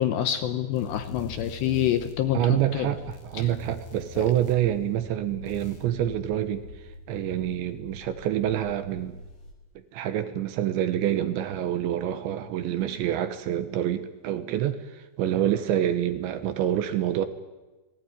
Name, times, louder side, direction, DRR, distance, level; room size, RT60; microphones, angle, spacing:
voice 1, 0.0-2.9 3.4-3.5, left 11 dB, 75° left, 9 dB, 2.7 m, -26 dB
sound 1, 0.7-9.5, left 3 dB, 50° left, 4.9 m, -44 dB
voice 2, 2.3-6.6 7.1-9.1 9.9-17.3, right 11 dB, 70° right, 10 dB, 3.1 m, -27 dB
27.0 x 19.0 x 9.8 m, 1.2 s
omnidirectional pair, 5.9 m